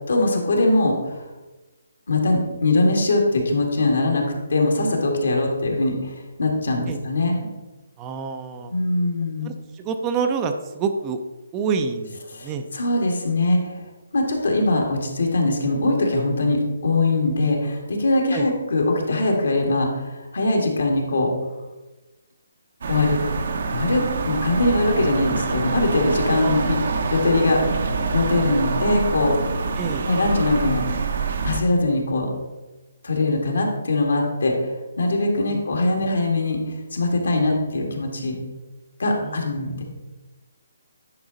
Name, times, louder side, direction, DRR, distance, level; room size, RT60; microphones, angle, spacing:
voice 1, 0.1-1.3 2.1-4.2 4.5-7.5 8.7-9.5 12.3-13.8 14.1-21.3 22.9-23.2 23.7-27.6 28.1-29.4 30.1-30.8 31.4-32.3 33.0-34.6 35.0-38.4 39.0-39.8, left 2 dB, 75° left, 1 dB, 2.1 m, -22 dB
voice 2, 8.0-8.7 9.4-11.2 11.5-12.2 12.4-12.6 18.3-18.5 26.4-26.6 29.8-30.0 35.5-35.6 39.2-39.4, right 5 dB, 20° right, 6 dB, 0.6 m, -27 dB
sound 1, 22.8-31.6, right 4 dB, 60° right, 1.0 m, -25 dB
10.0 x 4.8 x 4.0 m, 1.1 s
hypercardioid pair, 150°, 0 cm